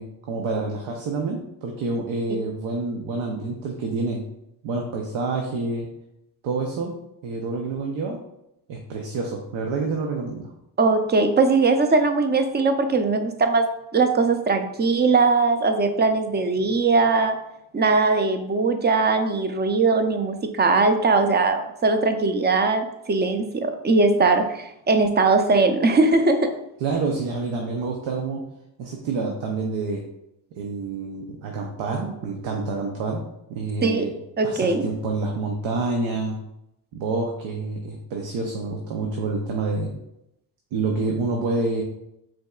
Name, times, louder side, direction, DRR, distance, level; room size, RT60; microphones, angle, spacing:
voice 1, 0.0-4.2 4.6-5.9 6.4-6.9 7.2-8.2 8.7-10.5 26.8-28.4 28.8-30.0 30.5-33.2 33.5-34.1 34.4-36.4 36.9-39.9 40.7-41.8, right 3 dB, 80° right, 1 dB, 0.8 m, -28 dB
voice 2, 10.8-17.4 17.7-26.6 33.8-34.1 34.4-34.8, right 3 dB, 25° right, 7 dB, 0.5 m, -20 dB
5.1 x 3.6 x 2.3 m, 0.83 s
cardioid pair, 90°, 46 cm